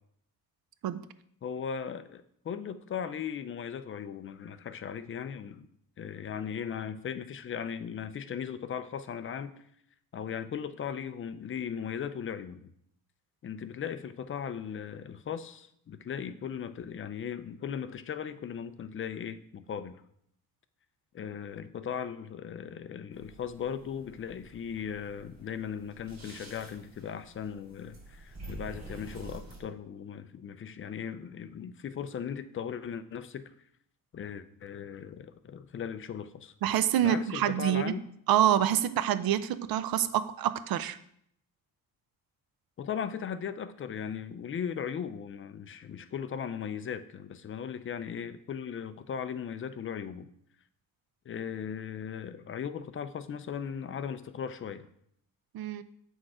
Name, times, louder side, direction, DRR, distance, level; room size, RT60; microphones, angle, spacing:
voice 1, 1.4-5.7 6.0-9.5 10.1-12.7 13.4-20.0 21.1-33.5 34.1-36.5 37.0-38.0 42.8-50.3 51.3-54.9, left 7 dB, 35° left, 11 dB, 0.5 m, -38 dB
sound 1, 23.1-29.6, right 1 dB, 50° right, 3.1 m, -48 dB
voice 2, 36.6-37.9 38.3-41.0 55.5-55.8, right 11 dB, 80° right, 13 dB, 0.6 m, -26 dB
7.7 x 6.4 x 4.8 m, 0.69 s
cardioid pair, 160°, 35 cm